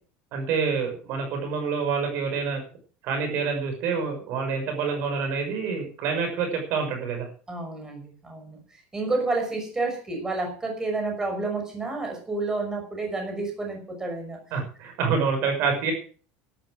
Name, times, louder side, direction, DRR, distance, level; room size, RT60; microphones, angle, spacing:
voice 1, 0.3-2.6 3.0-7.3 14.5-15.9, right 5 dB, 55° right, 4 dB, 5.9 m, -27 dB
voice 2, 7.5-14.4, right 3 dB, 10° right, 2 dB, 6.2 m, -30 dB
12.5 x 12.0 x 6.4 m, 0.41 s
cardioid pair, 150°, 5 cm